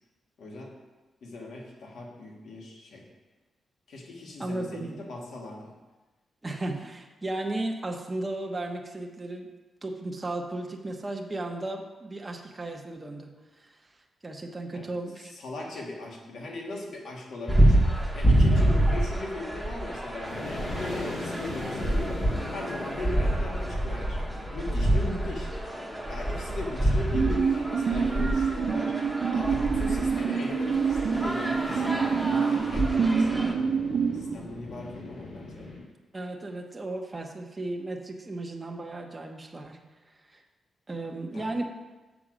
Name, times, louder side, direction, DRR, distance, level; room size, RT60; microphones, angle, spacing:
voice 1, 0.4-0.7 1.2-3.0 3.9-5.7 14.7-14.9 15.3-17.8 18.1-22.2 22.5-24.2 24.5-25.5 26.1-29.0 29.3-33.4 34.1-35.7 41.3-41.5, left 2 dB, 75° left, -1 dB, 1.8 m, -39 dB
voice 2, 4.4-5.0 6.4-9.5 9.8-13.8 14.2-15.3 25.0-25.4 33.4-33.5 36.1-39.8 40.3-40.4 40.9-41.6, right 2 dB, 20° right, 2 dB, 0.9 m, -35 dB
sound 1, 17.5-33.5, right 1 dB, ahead, 1.1 m, -27 dB
sound 2, 20.2-35.8, left 2 dB, 55° left, 2.5 m, -41 dB
sound 3, 27.1-34.4, right 5 dB, 55° right, 0.4 m, -27 dB
7.3 x 6.1 x 5.1 m, 1.2 s
cardioid pair, 105°, 0 cm